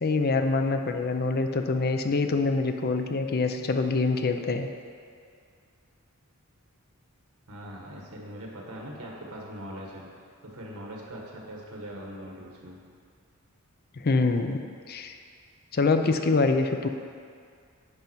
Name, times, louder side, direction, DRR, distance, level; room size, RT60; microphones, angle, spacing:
voice 1, 0.0-4.7 14.0-14.6 14.9-15.1 15.7-16.9, left 3 dB, 45° left, 6 dB, 0.5 m, -25 dB
voice 2, 7.5-10.1 10.4-12.8, equal, 90° right, -2 dB, 1.7 m, -41 dB
11.0 x 5.3 x 4.5 m, 2.2 s
head